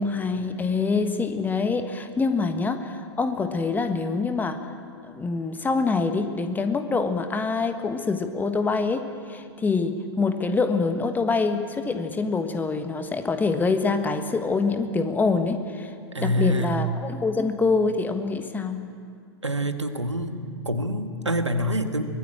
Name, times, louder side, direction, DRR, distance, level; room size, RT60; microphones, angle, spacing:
voice 1, 0.0-4.6 5.0-15.9 16.2-18.9, left 4 dB, 10° left, 8 dB, 1.4 m, -25 dB
voice 2, 16.1-16.9 19.4-22.0, equal, 85° right, 7 dB, 1.7 m, -26 dB
24.0 x 20.5 x 8.8 m, 2.2 s
figure-of-eight pair, 100°, 15 cm